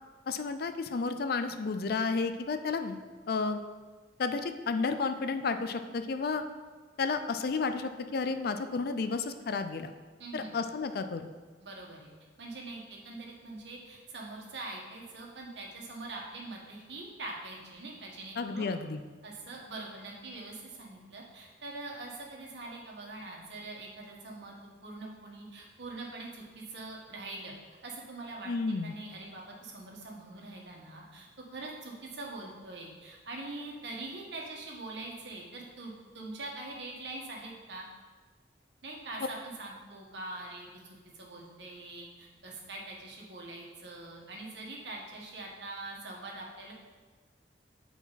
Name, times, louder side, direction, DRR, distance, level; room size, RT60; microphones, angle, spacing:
voice 1, 0.3-3.0 3.3-3.6 4.2-6.4 7.0-9.9 10.3-11.3 18.4-19.0 28.5-28.9, left 4 dB, 60° left, 9 dB, 0.4 m, -32 dB
voice 2, 10.2-10.5 11.6-12.1 12.4-18.7 19.2-27.5 27.8-28.5 28.8-37.8 38.8-46.7, right 2 dB, 75° right, -2 dB, 1.5 m, -43 dB
8.9 x 4.6 x 4.1 m, 1.4 s
head